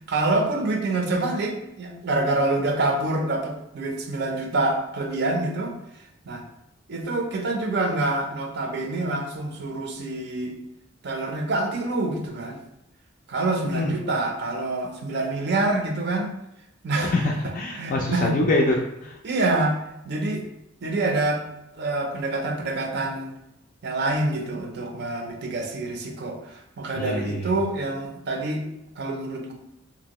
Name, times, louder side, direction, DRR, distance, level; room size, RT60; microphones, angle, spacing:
voice 1, 0.0-5.7 6.3-6.4 6.9-10.6 11.0-12.6 13.3-16.3 16.8-17.1 17.4-18.3 19.2-19.8 20.0-20.5 20.8-21.4 21.8-23.3 23.8-28.7 29.0-29.5, right 2 dB, 55° right, 3 dB, 0.5 m, -26 dB
voice 2, 13.6-14.0 17.0-19.2 27.0-27.5, left 2 dB, 40° left, -1 dB, 0.3 m, -25 dB
2.9 x 2.6 x 2.9 m, 0.86 s
head